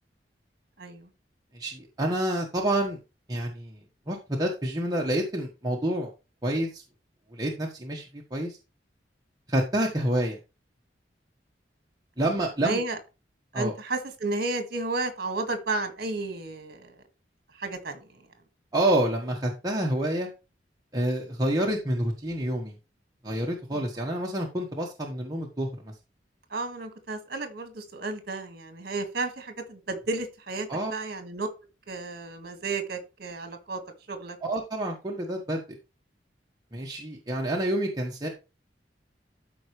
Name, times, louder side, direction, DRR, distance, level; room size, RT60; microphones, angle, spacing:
voice 1, 0.8-1.1 12.2-12.3 12.6-13.0 13.5-16.9 17.6-18.2 23.7-23.9 26.5-31.5 31.9-33.8 34.1-34.4, right 3 dB, 60° right, 7 dB, 1.9 m, -32 dB
voice 2, 1.5-3.0 3.3-6.1 6.4-6.8 7.3-8.0 8.3-8.6 9.5-10.4 12.2-12.8 13.5-13.7 18.7-20.3 20.9-22.8 23.2-25.9 30.7-30.9 34.4-35.6 36.7-38.3, right 1 dB, 20° right, -1 dB, 1.4 m, -28 dB
13.0 x 4.8 x 3.2 m, 0.29 s
head